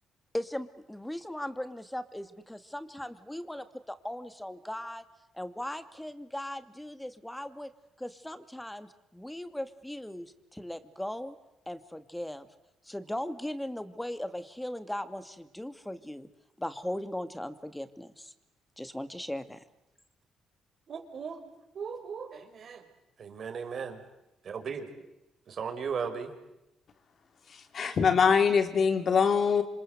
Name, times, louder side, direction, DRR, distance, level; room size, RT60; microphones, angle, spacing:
voice 1, 0.3-5.0 5.3-7.7 8.0-11.4 11.7-12.5 12.8-16.3 16.6-18.3 18.8-19.6, left 1 dB, 5° left, 10 dB, 2.4 m, -38 dB
voice 2, 20.9-21.4 21.7-22.8 23.2-24.0 24.5-24.9 25.5-26.3, right 6 dB, 55° right, 6 dB, 5.4 m, -36 dB
voice 3, 27.5-29.6, left 6 dB, 50° left, 8 dB, 3.6 m, -24 dB
27.5 x 26.5 x 8.1 m, 0.92 s
cardioid pair, 90°, 0 cm